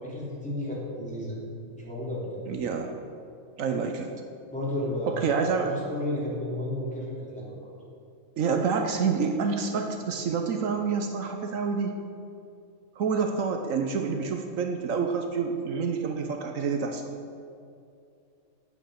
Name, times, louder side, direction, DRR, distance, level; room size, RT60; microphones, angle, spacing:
voice 1, 0.0-1.4 1.7-2.4 4.5-5.2 5.6-7.6, left 1 dB, 5° left, -7 dB, 3.0 m, -32 dB
voice 2, 2.5-2.9 3.6-4.1 5.1-5.7 8.4-12.0 13.0-17.1, right 5 dB, 75° right, 4 dB, 1.1 m, -28 dB
9.3 x 8.6 x 6.4 m, 2.5 s
omnidirectional pair, 1.4 m